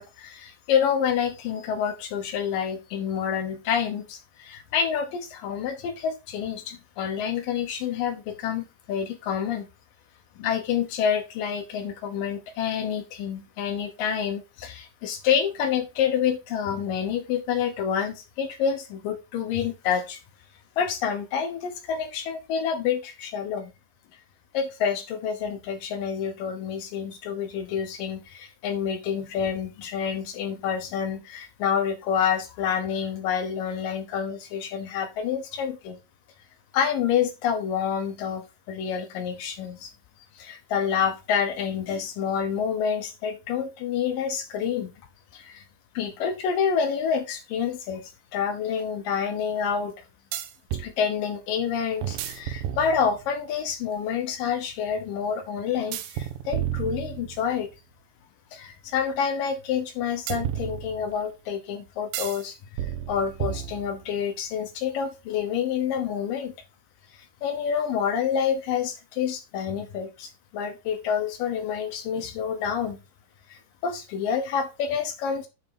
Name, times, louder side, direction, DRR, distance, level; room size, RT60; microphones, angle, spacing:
voice 1, 0.0-9.7 10.4-20.2 20.8-23.7 24.5-36.0 36.7-39.9 40.3-44.9 45.3-45.6 45.9-49.9 50.7-57.7 58.5-62.6 62.8-66.5 67.4-73.0 73.5-75.5, left 7 dB, 70° left, 7 dB, 2.3 m, -28 dB
sound 1, 47.9-48.0 50.3-50.9 52.0-53.3 55.9-57.6 60.3-61.3 62.1-62.4 62.8-64.1, right 11 dB, 85° right, 2.1 m, -32 dB
9.3 x 3.6 x 5.2 m, 0.26 s
omnidirectional pair, 4.9 m